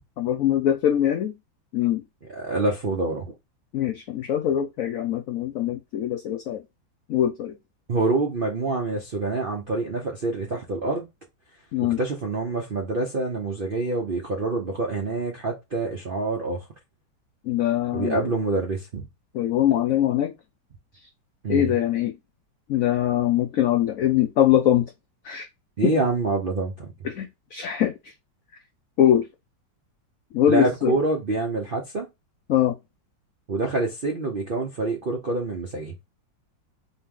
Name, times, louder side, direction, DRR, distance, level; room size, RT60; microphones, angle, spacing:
voice 1, 0.2-1.3 1.7-2.0 3.7-6.6 7.1-7.6 11.7-12.0 17.4-18.3 19.3-20.3 21.5-22.1 22.7-24.9 25.2-25.4 25.8-25.9 27.0-27.9 29.0-29.3 30.3-31.0 32.5-32.7, left 11 dB, 85° left, 0.7 m, -22 dB
voice 2, 2.3-3.3 7.9-11.1 12.0-16.7 17.9-19.0 21.4-21.7 25.8-26.9 30.5-32.1 33.5-36.0, right 3 dB, 60° right, 0.5 m, -26 dB
4.1 x 2.9 x 3.7 m
omnidirectional pair, 2.1 m